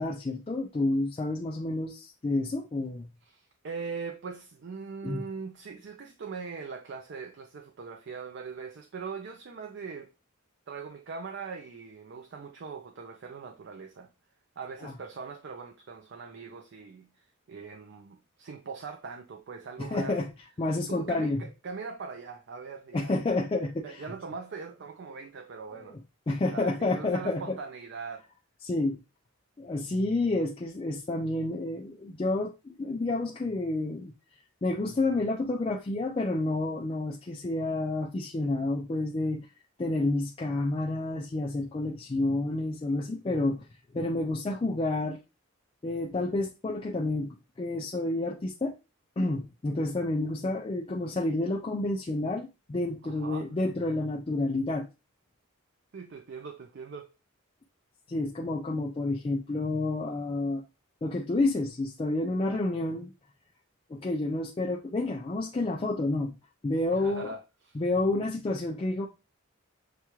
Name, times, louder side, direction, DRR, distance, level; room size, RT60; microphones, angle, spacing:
voice 1, 0.0-3.1 5.0-5.2 14.8-14.9 19.8-20.3 20.6-21.5 22.9-24.1 25.7-25.9 26.3-27.6 28.6-29.0 29.6-34.1 34.6-39.5 39.8-45.2 45.8-48.7 49.2-54.9 58.1-60.6 61.0-63.1 63.9-66.3 66.6-67.3 67.7-69.1, left 2 dB, 25° left, 0.4 m, -29 dB
voice 2, 3.3-10.1 10.7-14.1 14.6-20.2 20.9-23.1 23.8-26.0 26.5-28.3 53.0-53.5 55.9-57.1 66.9-67.8, right 5 dB, 55° right, 0.4 m, -41 dB
6.7 x 2.3 x 3.0 m
head